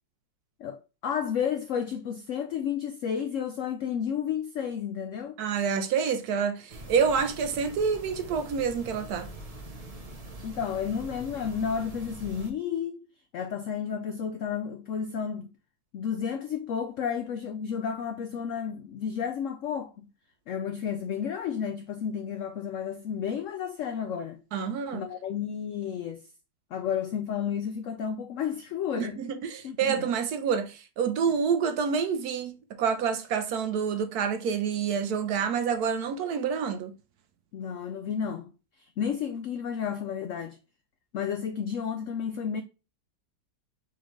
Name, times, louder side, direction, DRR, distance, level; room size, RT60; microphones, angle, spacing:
voice 1, 0.6-5.4 10.4-13.1 13.3-15.5 15.9-20.1 20.5-24.4 24.9-26.2 26.7-29.2 29.6-30.1 37.5-38.5 38.8-40.6 41.1-42.6, left 7 dB, 80° left, 0.7 m, -32 dB
voice 2, 5.4-9.3 24.5-25.0 29.0-36.9, right 6 dB, 70° right, 1.0 m, -28 dB
sound 1, 6.7-12.5, right 2 dB, 35° right, 0.6 m, -43 dB
4.2 x 3.8 x 3.1 m
omnidirectional pair, 1.9 m